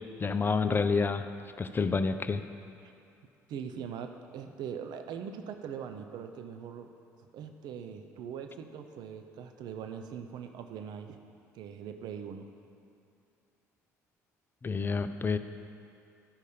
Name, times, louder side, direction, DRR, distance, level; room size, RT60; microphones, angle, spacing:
voice 1, 0.2-1.2 1.6-2.4 14.6-15.4, left 4 dB, 25° left, 10 dB, 0.5 m, -28 dB
voice 2, 3.5-6.9 7.2-11.2 11.5-12.5, right 7 dB, 55° right, 7 dB, 0.6 m, -41 dB
12.0 x 5.3 x 5.0 m, 2.5 s
figure-of-eight pair, 55°, 8 cm